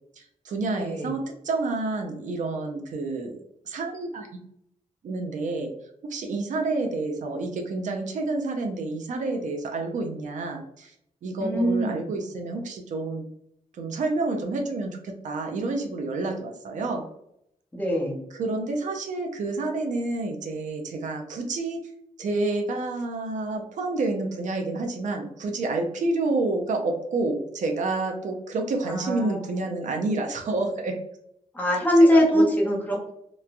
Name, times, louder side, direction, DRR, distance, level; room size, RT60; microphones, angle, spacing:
voice 1, 0.2-4.4 5.0-5.7 6.1-10.9 11.2-13.2 13.7-17.0 18.3-21.9 22.2-30.9 32.1-32.4, right 3 dB, 70° right, 3 dB, 0.5 m, -29 dB
voice 2, 0.8-1.1 11.4-12.0 17.7-18.2 28.9-29.4 31.5-33.1, equal, 15° left, -2 dB, 0.7 m, -22 dB
3.0 x 2.2 x 2.4 m, 0.77 s
wide cardioid pair, 150°, 13 cm